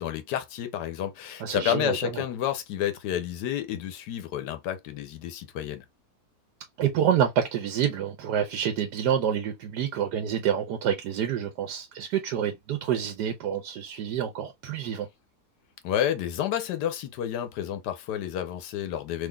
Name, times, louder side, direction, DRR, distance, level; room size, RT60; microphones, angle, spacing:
voice 1, 0.0-5.8 15.8-19.3, left 10 dB, 90° left, 1.3 m, -30 dB
voice 2, 1.4-2.2 6.8-15.1, right 9 dB, 85° right, 1.3 m, -27 dB
3.8 x 3.2 x 2.2 m
omnidirectional pair, 1.7 m